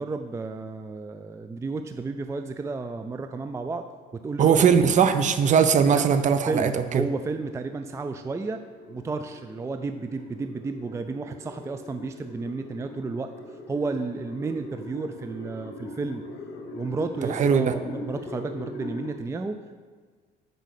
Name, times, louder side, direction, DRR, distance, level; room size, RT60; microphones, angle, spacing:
voice 1, 0.0-3.8 4.1-4.9 5.9-6.0 6.4-8.6 8.9-13.3 13.7-16.2 16.7-19.7, right 3 dB, 15° right, 8 dB, 0.4 m, -32 dB
voice 2, 4.4-7.0 17.3-17.7, right 7 dB, 45° right, 10 dB, 0.7 m, -20 dB
sound 1, 7.0-19.1, left 2 dB, 80° left, 1.1 m, -42 dB
8.2 x 5.3 x 6.5 m, 1.5 s
cardioid pair, 110°, 17 cm